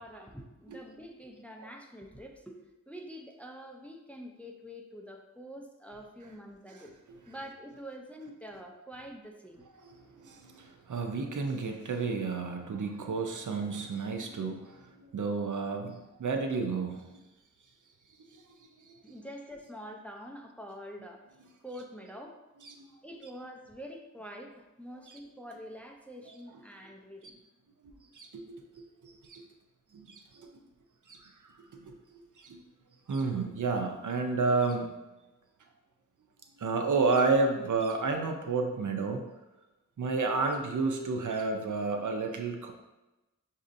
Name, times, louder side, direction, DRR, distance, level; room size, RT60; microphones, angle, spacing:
voice 1, 0.0-6.9 7.3-9.6 19.0-21.2 21.6-22.4 23.0-27.4, equal, 5° left, 2 dB, 0.5 m, -46 dB
voice 2, 9.8-17.1 22.6-22.9 25.1-25.2 28.1-28.6 29.0-29.4 29.9-30.5 31.1-31.9 32.4-32.6 33.1-34.9 36.6-39.2 40.0-42.7, right 4 dB, 65° right, 4 dB, 0.6 m, -31 dB
6.0 x 2.7 x 2.6 m, 1.0 s
cardioid pair, 40°, 33 cm